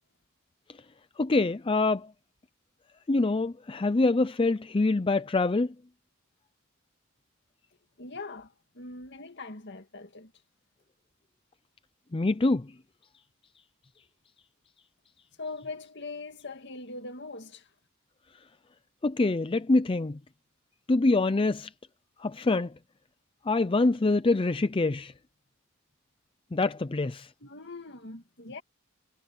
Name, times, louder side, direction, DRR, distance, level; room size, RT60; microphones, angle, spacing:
voice 1, 1.2-2.1 3.1-5.7 12.1-12.7 19.0-20.2 20.9-21.7 22.2-22.7 23.5-25.1 26.5-27.3, left 2 dB, 25° left, 0.5 m, -25 dB
voice 2, 8.0-10.3 15.4-17.7 27.4-28.6, left 3 dB, 55° left, 2.1 m, -41 dB
head